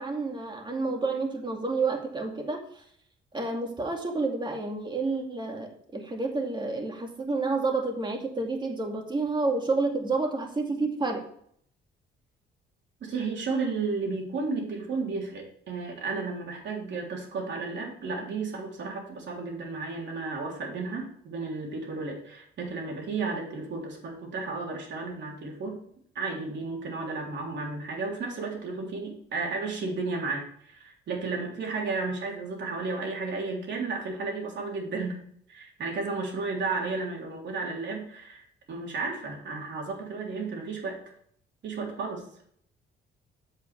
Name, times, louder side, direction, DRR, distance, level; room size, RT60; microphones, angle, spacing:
voice 1, 0.0-2.8 3.3-11.2, right 3 dB, 25° right, 2 dB, 2.3 m, -29 dB
voice 2, 13.0-25.8 26.2-35.2 35.5-41.0 41.6-42.2, right 4 dB, 65° right, 0 dB, 3.5 m, -33 dB
8.1 x 8.1 x 3.4 m, 0.64 s
cardioid pair, 90°, 20 cm